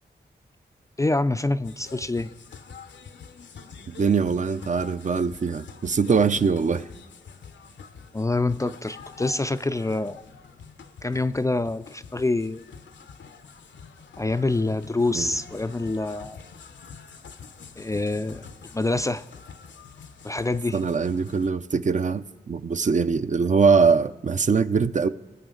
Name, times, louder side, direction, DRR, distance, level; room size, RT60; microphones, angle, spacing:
voice 1, 1.0-2.3 8.1-10.2 11.0-12.6 14.2-16.4 17.8-18.4 18.7-19.2 20.2-20.8, left 2 dB, 15° left, 12 dB, 0.3 m, -26 dB
sound 1, 1.6-21.5, left 6 dB, 85° left, 0.7 m, -46 dB
voice 2, 3.9-6.9 15.1-15.3 20.7-25.1, right 5 dB, 45° right, 12 dB, 0.5 m, -22 dB
20.5 x 7.3 x 3.8 m, 1.3 s
cardioid pair, 60°, 18 cm